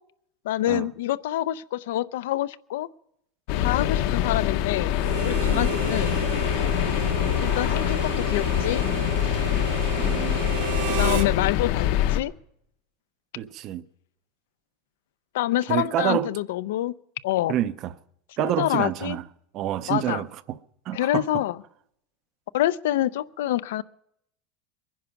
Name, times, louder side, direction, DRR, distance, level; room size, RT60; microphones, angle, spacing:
voice 1, 0.4-2.9 3.6-6.2 7.4-8.8 10.9-12.3 15.3-16.9 17.2-17.6 18.4-19.2 19.9-20.2 20.9-21.6 22.5-23.8, left 14 dB, 75° left, 0.5 m, -26 dB
sound 1, 3.5-12.2, left 11 dB, 50° left, 0.8 m, -24 dB
Harmonica, 5.0-11.3, right 10 dB, 60° right, 1.0 m, -32 dB
voice 2, 10.0-10.4 13.4-13.8 15.7-16.3 17.5-17.9 18.4-19.2 19.5-20.3 20.9-21.3, right 12 dB, 30° right, 0.5 m, -27 dB
22.5 x 10.5 x 5.8 m
supercardioid pair, 175°, 0 cm